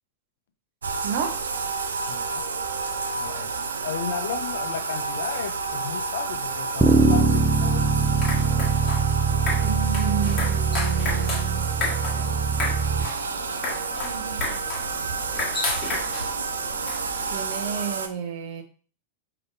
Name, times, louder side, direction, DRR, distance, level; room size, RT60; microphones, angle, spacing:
Bathtub (filling or washing), 0.8-18.1, right 4 dB, 70° right, 0.4 m, -30 dB
voice 1, 1.0-1.4 9.6-11.7 12.1-12.5 14.0-14.6 17.3-18.6, right 7 dB, 50° right, 4 dB, 0.8 m, -32 dB
voice 2, 2.1-2.4 3.2-3.5 3.8-7.8, left 8 dB, 60° left, 8 dB, 0.6 m, -34 dB
Bass guitar, 6.8-13.1, right 4 dB, 10° right, 0.5 m, -22 dB
sound 1, 8.0-17.4, left 3 dB, 25° left, 1.4 m, -33 dB
5.0 x 3.0 x 2.6 m, 0.38 s
figure-of-eight pair, 90°, 0 cm